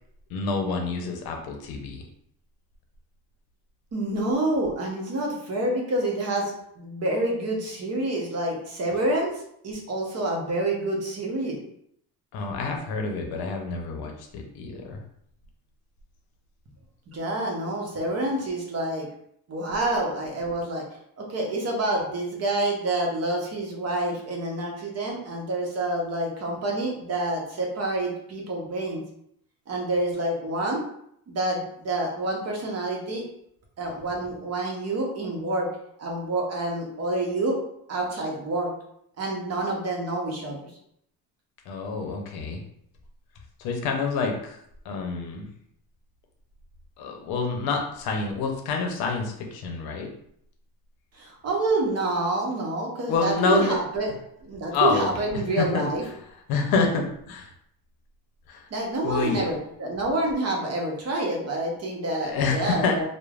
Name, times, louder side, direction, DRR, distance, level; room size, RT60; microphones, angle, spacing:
voice 1, 0.3-2.0 12.3-15.0 41.7-42.6 43.6-44.6 44.8-45.5 47.0-50.1 53.1-53.8 54.7-55.1 55.6-55.9 56.5-57.5 58.5-58.7 59.0-59.5 62.2-63.1, left 4 dB, 65° left, 3 dB, 0.7 m, -27 dB
voice 2, 3.9-9.3 9.6-11.6 17.1-19.1 19.5-20.8 21.2-29.0 29.7-30.8 31.3-33.2 33.8-35.7 36.0-37.6 37.9-38.7 39.2-40.7 51.1-54.1 54.4-56.0 58.7-63.1, right 2 dB, 40° right, 0 dB, 0.9 m, -27 dB
3.1 x 2.1 x 2.4 m, 0.71 s
cardioid pair, 100°, 40 cm